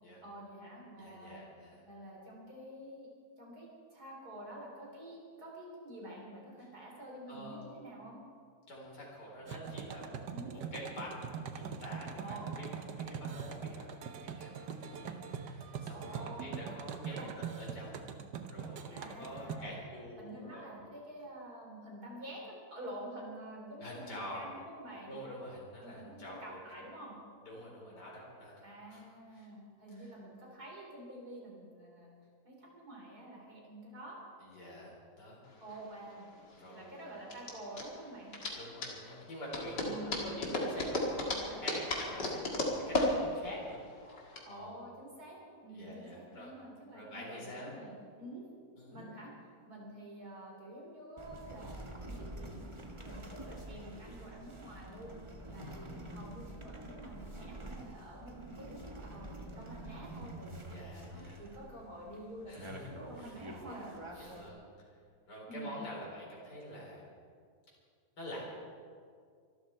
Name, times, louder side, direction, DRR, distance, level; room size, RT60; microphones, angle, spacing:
voice 1, 0.2-1.4 1.8-3.1 3.4-8.2 10.3-10.5 12.2-12.5 15.9-16.7 17.0-17.3 18.9-19.8 20.2-25.2 25.8-27.1 28.6-32.1 32.4-34.2 35.6-36.3 36.7-38.4 39.8-40.3 41.2-41.6 44.4-48.4 48.9-49.3 49.7-52.7 53.0-55.2 55.5-64.4 65.5-65.7, right 1 dB, 65° right, -2 dB, 4.7 m, -48 dB
voice 2, 1.0-1.8 7.3-7.7 8.7-18.1 18.5-20.7 23.8-24.5 25.1-26.6 27.4-29.0 29.3-29.5 29.9-30.1 34.4-35.4 36.5-37.1 38.6-41.3 41.6-43.8 44.5-44.7 45.7-46.5 46.9-47.7 48.8-49.1 55.5-56.1 60.7-61.4 62.5-63.3 64.2-64.9 65.3-67.1 68.2-68.4, equal, 75° left, -4 dB, 4.5 m, -47 dB
sound 1, 9.5-19.5, right 7 dB, 80° right, 1.5 m, -42 dB
sound 2, 35.5-44.4, left 2 dB, 90° left, 2.9 m, -35 dB
sound 3, 51.2-64.5, right 1 dB, 20° right, 1.3 m, -47 dB
24.5 x 12.5 x 4.5 m, 2.2 s
omnidirectional pair, 1.8 m